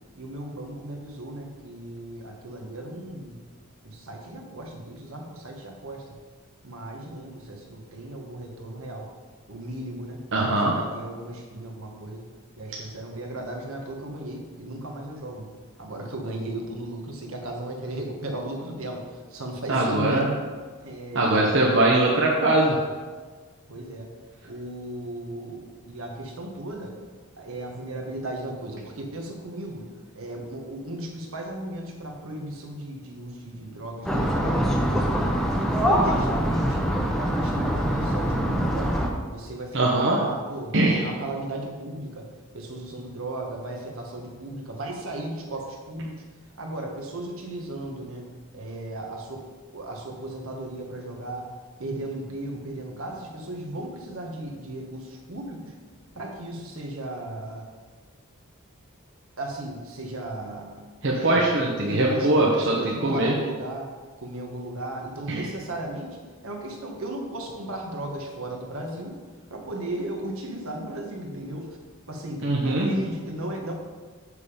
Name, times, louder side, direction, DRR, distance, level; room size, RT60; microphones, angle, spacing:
voice 1, 0.1-3.4 3.8-6.2 6.6-9.1 9.5-10.2 10.5-12.2 12.6-15.5 15.8-20.4 20.8-21.7 23.7-24.1 24.4-27.0 27.4-29.9 30.1-35.4 35.8-36.9 37.2-39.0 39.3-42.3 42.5-46.2 46.6-49.5 49.7-51.5 51.8-55.7 56.1-57.7 59.4-63.9 64.2-66.2 66.4-69.2 69.5-71.7 72.1-73.7, right 1 dB, 75° right, 1 dB, 1.4 m, -36 dB
voice 2, 10.3-10.7 19.7-20.3 21.1-22.8 39.7-40.2 40.7-41.1 61.0-62.8 63.0-63.3 65.3-65.4 72.4-72.9, right 2 dB, 55° right, -2 dB, 1.0 m, -21 dB
sound 1, 34.0-39.1, equal, ahead, 0.8 m, -24 dB
7.0 x 6.7 x 5.1 m, 1.5 s
head